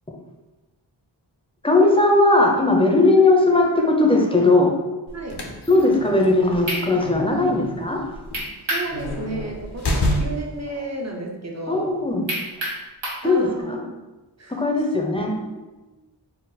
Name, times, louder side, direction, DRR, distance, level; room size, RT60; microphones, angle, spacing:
voice 1, 1.6-4.7 5.7-8.0 11.7-12.3 13.2-13.8 14.5-15.3, left 2 dB, 15° left, 1 dB, 0.6 m, -18 dB
sound 1, 5.1-10.6, left 1 dB, 65° left, 0.7 m, -29 dB
voice 2, 5.1-5.4 8.7-12.0 13.2-13.9 14.4-14.6 15.1-15.6 15.9-16.0, right 2 dB, 40° right, 0 dB, 0.7 m, -33 dB
sound 2, 6.7-6.9 8.3-8.9 9.3-9.4 12.3-13.3, right 1 dB, 80° right, 1.2 m, -27 dB
4.2 x 2.0 x 4.0 m, 1.1 s
wide cardioid pair, 40°, 43 cm